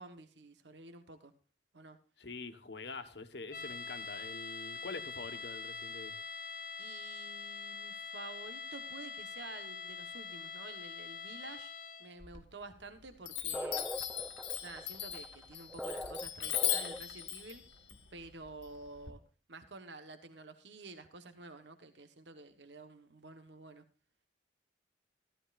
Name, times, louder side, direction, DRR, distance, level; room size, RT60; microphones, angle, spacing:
voice 1, 0.0-1.3 1.7-2.0 6.8-11.7 12.0-13.9 14.6-17.6 18.1-19.2 19.5-23.8, right 3 dB, 75° right, 8 dB, 1.2 m, -50 dB
voice 2, 2.2-6.2, left 3 dB, 70° left, 8 dB, 1.4 m, -45 dB
sound 1, 3.5-12.2, left 5 dB, 50° left, 1.1 m, -44 dB
Chime, 12.2-12.9 13.2-19.1, left 11 dB, 85° left, 1.6 m, -38 dB
sound 2, 13.5-17.2, equal, 5° right, 0.6 m, -42 dB
14.5 x 14.0 x 2.5 m, 0.37 s
head